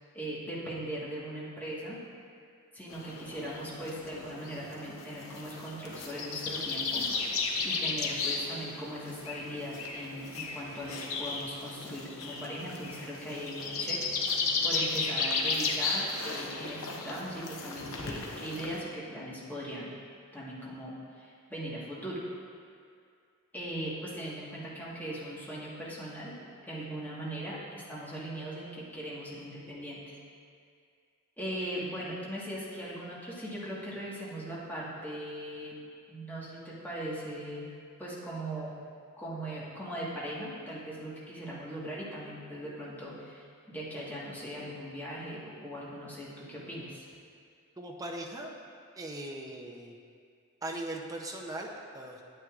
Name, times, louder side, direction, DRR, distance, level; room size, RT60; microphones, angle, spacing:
voice 1, 0.1-2.0 2.7-7.1 7.6-19.9 20.3-22.2 23.5-26.4 26.6-30.2 31.4-37.7 38.0-38.8 39.2-47.1, right 1 dB, 10° left, -7 dB, 1.4 m, -39 dB
sound 1, 2.9-18.8, left 4 dB, 75° left, 0.8 m, -34 dB
voice 2, 47.8-48.5 49.0-50.0 50.6-52.2, right 1 dB, 15° right, 0 dB, 0.6 m, -39 dB
9.2 x 9.0 x 2.4 m, 2.3 s
head